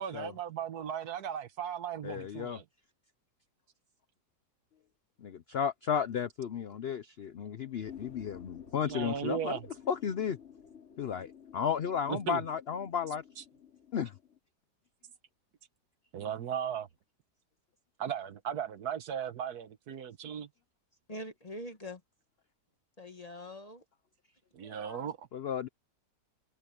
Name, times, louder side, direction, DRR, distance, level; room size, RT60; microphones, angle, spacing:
voice 1, 0.0-2.6 8.8-9.7 12.1-12.4 13.4-13.5 16.1-16.9 18.0-20.5 24.5-25.2, right 8 dB, 65° right, 1.4 m, -36 dB
voice 2, 2.0-2.6 5.2-9.6 9.9-10.4 11.0-13.2 13.9-14.1 25.3-25.7, left 7 dB, 70° left, 0.6 m, -33 dB
sound 1, 7.8-14.4, left 8 dB, 40° left, 3.1 m, -52 dB
voice 3, 21.1-22.0 23.0-23.8 24.6-25.1, left 1 dB, 25° left, 1.2 m, -44 dB
omnidirectional pair, 1.9 m